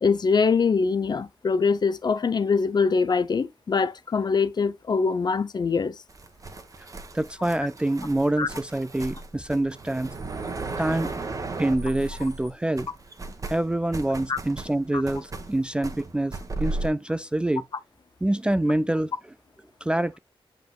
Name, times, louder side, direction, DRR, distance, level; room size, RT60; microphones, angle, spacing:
voice 1, 0.0-6.0 8.4-8.5 14.3-14.4 14.9-15.0, left 5 dB, 45° left, 0.7 m, -23 dB
sound 1, 6.1-12.5 12.8-16.9, right 3 dB, 35° right, 1.4 m, -36 dB
voice 2, 7.1-10.1 10.8-11.1 11.6-12.9 13.5-17.6 18.2-19.1 19.8-20.2, right 1 dB, 10° right, 0.4 m, -26 dB
7.7 x 5.1 x 2.4 m
wide cardioid pair, 105°, 10 cm